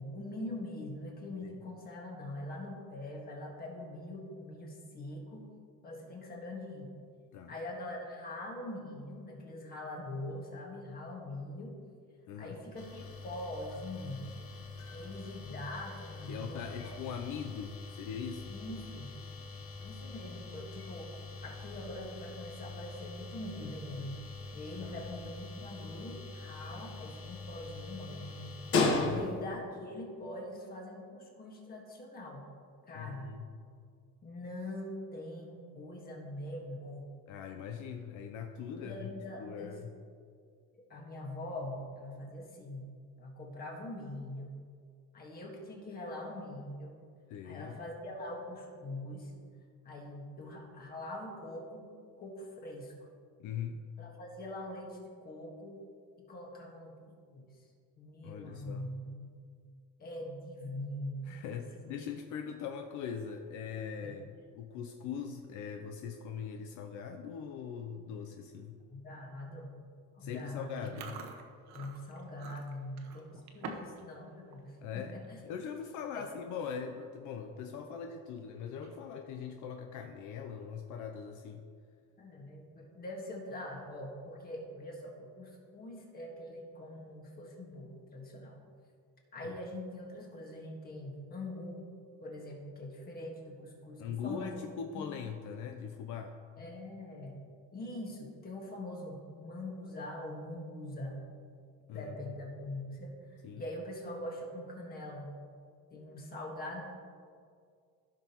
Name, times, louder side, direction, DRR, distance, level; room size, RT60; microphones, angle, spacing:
voice 1, 0.0-5.5 5.8-6.9 7.5-11.7 12.4-14.3 14.9-16.9 18.5-19.2 19.8-21.1 21.4-24.2 24.5-28.6 29.1-32.4 32.8-33.3 34.2-37.1 38.8-39.8 40.9-42.9 43.2-44.5 45.1-46.9 47.4-49.3 49.8-51.9 52.2-52.9 54.0-55.8 56.3-56.9 57.3-57.5 58.0-59.3 60.0-61.9 64.0-64.1 68.9-69.7 70.1-70.9 71.7-75.4 76.1-76.3 82.2-88.6 89.3-91.9 92.2-94.6 94.9-95.0 96.6-97.4 97.7-101.2 101.9-105.3 105.9-106.8, left 1 dB, 30° left, 0 dB, 1.6 m, -43 dB
voice 2, 12.3-12.6 16.3-18.6 24.8-24.9 29.0-29.2 32.9-33.5 37.3-39.1 39.4-39.9 47.3-47.8 53.4-53.8 58.2-58.9 61.2-68.8 70.2-71.2 74.8-75.2 75.4-81.7 89.4-89.6 94.0-96.4 101.9-102.3 103.4-103.6, left 7 dB, 70° left, 5 dB, 0.6 m, -41 dB
sound 1, 12.7-29.6, left 3 dB, 45° left, 1.1 m, -39 dB
Chewing mastication, 70.8-74.0 74.3-74.6 75.1-75.3 76.0-76.1 76.4-76.7 77.1-77.2 78.7-79.2, right 4 dB, 60° right, 1.0 m, -47 dB
15.0 x 6.0 x 3.0 m, 2.2 s
cardioid pair, 155°, 32 cm